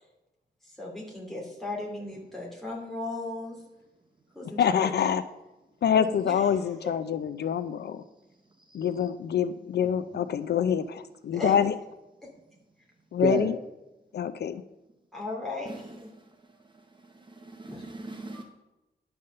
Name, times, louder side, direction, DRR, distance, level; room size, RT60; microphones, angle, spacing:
voice 1, 0.8-3.5 4.3-4.9 5.9-6.7 11.3-11.5 15.1-16.1 17.7-17.8 18.3-18.4, left 2 dB, ahead, -4 dB, 2.5 m, -36 dB
voice 2, 4.6-5.2 5.8-8.0 8.7-11.7 13.1-13.6 14.1-14.6, left 8 dB, 70° left, 12 dB, 0.4 m, -26 dB
voice 3, 13.2-13.5 15.7-15.8 17.1-18.4, right 3 dB, 25° right, 4 dB, 0.7 m, -34 dB
10.0 x 5.5 x 6.5 m, 1.0 s
wide cardioid pair, 175°, 18 cm